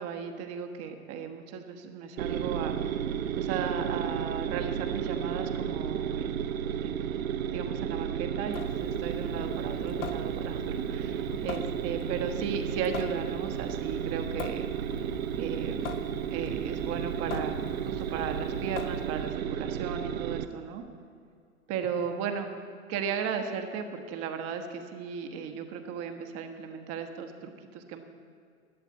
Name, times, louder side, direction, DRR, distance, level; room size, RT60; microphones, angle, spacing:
voice 1, 0.0-2.8 3.4-6.4 6.8-7.1 7.5-14.7 15.4-16.0 16.3-20.8 21.7-22.5 22.9-28.0, right 7 dB, 35° right, 5 dB, 1.3 m, -36 dB
sound 1, 2.2-20.4, right 9 dB, 70° right, 0.8 m, -33 dB
Water tap faucet / Sink (filling or washing) / Drip, 8.5-19.4, left 6 dB, 55° left, 1.2 m, -43 dB
11.5 x 7.3 x 9.3 m, 2.4 s
hypercardioid pair, 115°, 42 cm